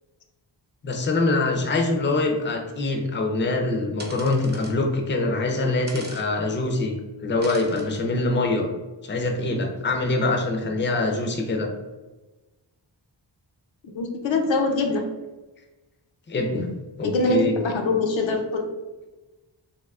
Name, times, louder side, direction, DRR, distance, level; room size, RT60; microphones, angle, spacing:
voice 1, 0.8-8.7 9.0-11.7 16.3-16.7 17.0-17.5, left 2 dB, 25° left, 2 dB, 0.4 m, -24 dB
sound 1, 4.0-4.7 5.9-6.2 7.4-8.0, right 1 dB, 25° right, 0.6 m, -41 dB
voice 2, 13.8-15.0 17.0-18.7, left 2 dB, 85° left, 2 dB, 0.6 m, -23 dB
3.5 x 2.5 x 2.4 m, 1.2 s
wide cardioid pair, 110°, 44 cm